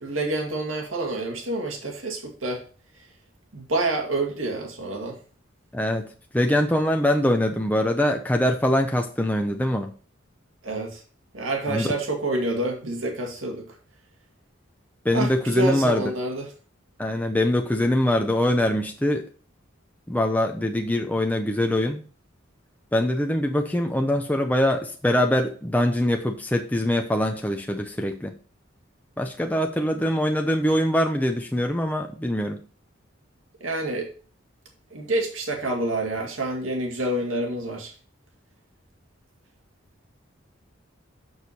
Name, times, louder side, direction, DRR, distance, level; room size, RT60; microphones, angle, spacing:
voice 1, 0.0-2.6 3.5-5.2 10.6-11.0 11.3-13.6 15.1-16.5 33.6-34.1 34.9-37.9, right 2 dB, 80° right, 2 dB, 2.1 m, -28 dB
voice 2, 5.7-6.1 6.3-9.9 11.7-11.9 15.0-16.0 17.0-19.2 20.1-22.0 22.9-28.3 29.2-32.6, left 1 dB, 10° left, 3 dB, 0.6 m, -23 dB
6.7 x 6.3 x 4.2 m, 0.39 s
head